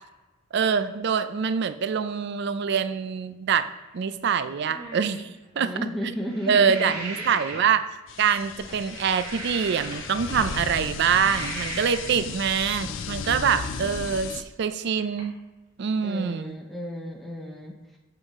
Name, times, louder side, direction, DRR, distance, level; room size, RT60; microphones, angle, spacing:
voice 1, 0.5-3.7 3.9-5.3 5.6-5.7 6.5-7.8 8.2-14.3 14.6-15.4 15.8-16.6, right 7 dB, 55° right, 12 dB, 0.4 m, -24 dB
sound 1, 0.9-1.0 2.7-2.8 3.2-3.3 3.8-4.0 4.3-4.4 4.6-6.8 7.5-7.7 8.6-8.9 9.9-10.1 10.9-11.0 11.4-11.6 12.8-13.0 13.4-14.4 15.0-15.2, right 1 dB, 75° right, 2.2 m, -44 dB
voice 2, 5.5-6.9 16.0-17.7, equal, ahead, -1 dB, 0.6 m, -33 dB
sound 2, 6.3-7.8 8.6-10.3 10.8-12.2, right 2 dB, 90° right, 2.0 m, -37 dB
sound 3, 8.1-14.4, left 5 dB, 60° left, 0.5 m, -35 dB
7.6 x 4.9 x 3.6 m, 1.1 s
head